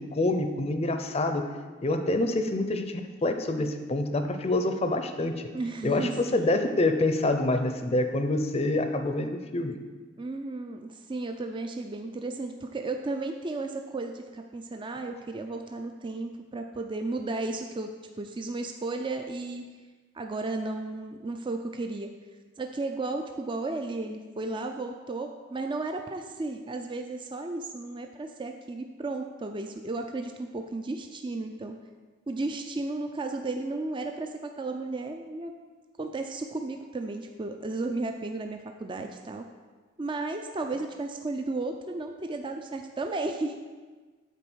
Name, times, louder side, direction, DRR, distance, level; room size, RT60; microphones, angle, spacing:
voice 1, 0.0-1.5 1.8-5.5 5.8-9.8, left 2 dB, 30° left, 7 dB, 0.6 m, -27 dB
voice 2, 5.5-6.4 10.2-17.9 18.2-19.6 20.1-22.1 22.6-31.8 32.3-35.5 36.0-39.4 40.0-43.5, right 2 dB, 25° right, 4 dB, 0.4 m, -34 dB
9.0 x 4.4 x 6.2 m, 1.4 s
head